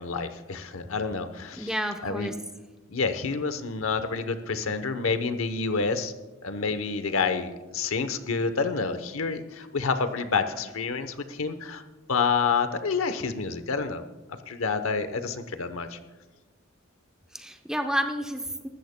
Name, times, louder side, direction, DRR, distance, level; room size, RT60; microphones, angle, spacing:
voice 1, 0.0-1.7 2.0-2.3 2.9-6.1 6.4-11.8 12.1-14.1 14.5-16.0, left 4 dB, 90° left, 9 dB, 0.9 m, -28 dB
voice 2, 1.6-2.3 17.3-18.7, equal, 5° right, 5 dB, 0.7 m, -30 dB
22.5 x 13.0 x 2.2 m, 1.2 s
head